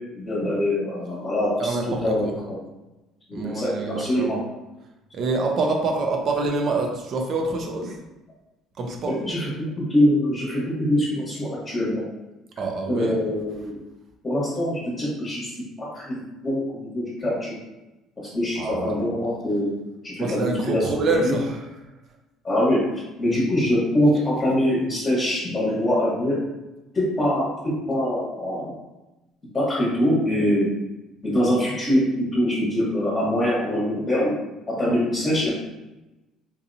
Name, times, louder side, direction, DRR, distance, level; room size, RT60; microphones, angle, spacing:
voice 1, 0.1-1.8 2.0-2.6 3.3-4.4 9.2-9.5 9.8-12.0 12.9-13.8 14.2-17.5 18.3-19.7 20.0-20.9 21.2-21.3 22.4-22.8 23.2-26.4 26.9-28.7 29.5-30.7 31.2-34.3 34.7-35.5, left 1 dB, 25° left, -7 dB, 1.2 m, -23 dB
voice 2, 1.6-2.3 3.3-4.4 5.1-8.0 8.8-9.2 12.6-13.2 18.6-18.9 20.2-21.6, right 3 dB, 45° right, 2 dB, 0.7 m, -26 dB
4.0 x 2.8 x 2.6 m, 1.0 s
cardioid pair, 130°, 0 cm